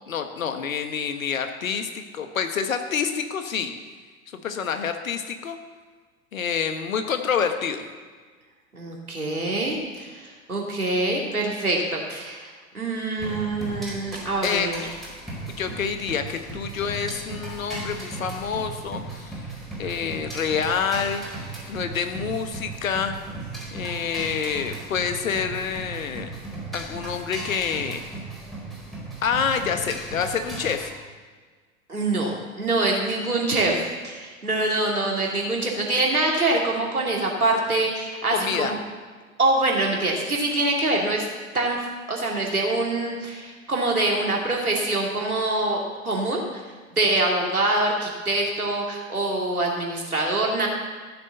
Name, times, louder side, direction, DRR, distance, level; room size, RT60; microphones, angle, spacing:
voice 1, 0.1-3.7 4.4-5.6 6.3-7.8 14.4-15.0 15.5-19.4 19.8-21.2 21.7-23.1 23.7-26.3 26.7-28.0 29.2-30.9 38.3-38.7, left 6 dB, 70° left, 7 dB, 1.4 m, -27 dB
voice 2, 8.7-14.8 31.9-38.8 39.4-41.3 41.5-41.8 42.1-46.6 47.0-50.7, right 2 dB, 85° right, -1 dB, 2.8 m, -25 dB
sound 1, 13.2-30.9, right 2 dB, ahead, 4.2 m, -36 dB
14.5 x 7.1 x 6.8 m, 1.5 s
figure-of-eight pair, 90°, 42 cm